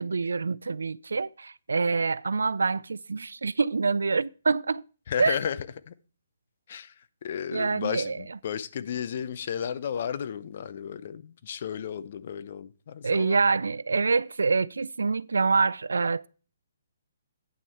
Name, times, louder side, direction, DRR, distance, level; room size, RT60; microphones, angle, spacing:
voice 1, 0.0-4.8 5.2-5.4 7.5-8.2 13.0-16.3, right 4 dB, 75° right, 0.3 m, -26 dB
voice 2, 5.1-5.6 5.9-6.0 6.7-13.4, left 8 dB, 50° left, 0.6 m, -33 dB
9.4 x 6.2 x 4.5 m
figure-of-eight pair, 135°, 0 cm